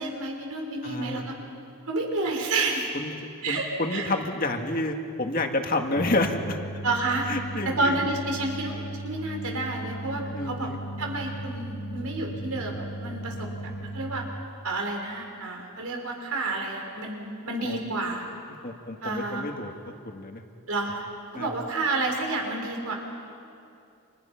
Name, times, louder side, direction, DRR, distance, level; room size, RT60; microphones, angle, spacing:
voice 1, 0.0-1.3 1.9-2.9 3.4-4.1 6.8-7.3 7.6-10.7 11.0-13.5 13.8-14.3 14.6-18.2 19.0-19.5 20.7-21.1 21.3-22.9, right 2 dB, 80° right, 1 dB, 5.0 m, -30 dB
voice 2, 0.8-1.2 2.9-3.1 3.5-6.6 7.2-8.0 10.3-10.8 17.6-17.8 18.6-20.4 21.3-21.5, left 2 dB, 40° left, 4 dB, 1.8 m, -29 dB
sound 1, 5.9-14.3, right 1 dB, 85° left, 2.5 m, -37 dB
30.0 x 27.5 x 5.8 m, 2.6 s
head